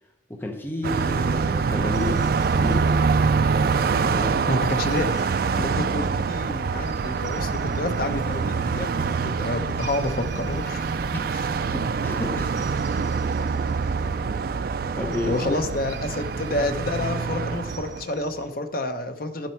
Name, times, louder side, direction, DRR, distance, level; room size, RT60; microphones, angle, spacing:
voice 1, 0.3-2.9 3.9-4.8 6.8-7.0 11.1-11.4 11.7-12.7 15.0-15.7, left 1 dB, 10° left, 2 dB, 0.8 m, -32 dB
Car passing by, 0.8-18.0, right 5 dB, 50° right, 0.3 m, -25 dB
sound 1, 0.9-18.5, right 3 dB, 80° right, 1.7 m, -45 dB
voice 2, 4.5-11.0 11.3-11.5 15.3-19.5, left 2 dB, 50° left, 7 dB, 0.9 m, -29 dB
11.0 x 7.6 x 4.6 m, 1.0 s
head